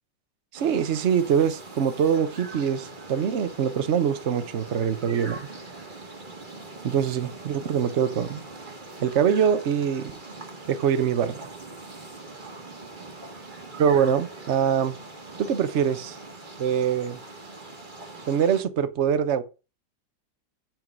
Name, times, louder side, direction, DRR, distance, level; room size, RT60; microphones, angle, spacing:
sound 1, 0.5-18.6, right 3 dB, 25° right, 2.0 m, -42 dB
voice 1, 0.5-5.4 6.8-8.4 9.0-10.1 10.7-11.5 13.8-15.0 15.4-16.2 16.6-17.2 18.3-19.4, right 8 dB, 45° right, 1.1 m, -24 dB
9.2 x 5.2 x 7.5 m
omnidirectional pair, 2.0 m